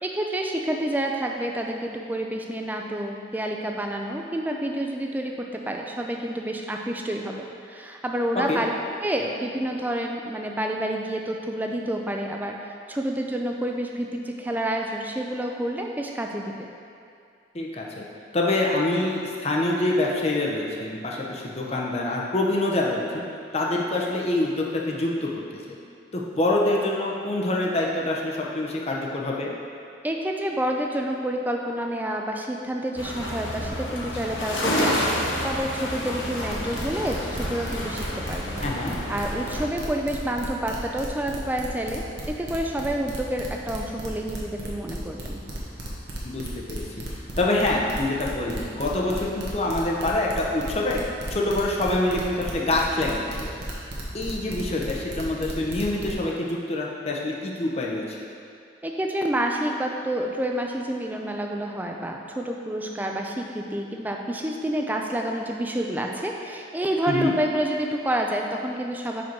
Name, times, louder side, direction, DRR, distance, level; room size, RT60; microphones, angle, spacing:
voice 1, 0.0-8.7 9.0-12.6 12.9-16.7 30.0-35.1 35.4-38.6 39.1-45.4 58.8-69.2, right 1 dB, 10° right, 1 dB, 0.4 m, -28 dB
voice 2, 17.5-18.0 18.3-23.3 23.5-25.3 26.1-29.5 38.6-38.9 46.2-46.8 47.4-51.0 51.3-53.5 54.1-58.2 67.1-67.3, left 2 dB, 35° left, -2 dB, 0.7 m, -25 dB
sound 1, 33.0-39.6, left 1 dB, 90° left, 1.0 m, -29 dB
sound 2, 36.5-56.1, right 1 dB, 65° right, 1.1 m, -34 dB
5.4 x 5.1 x 4.6 m, 2.4 s
head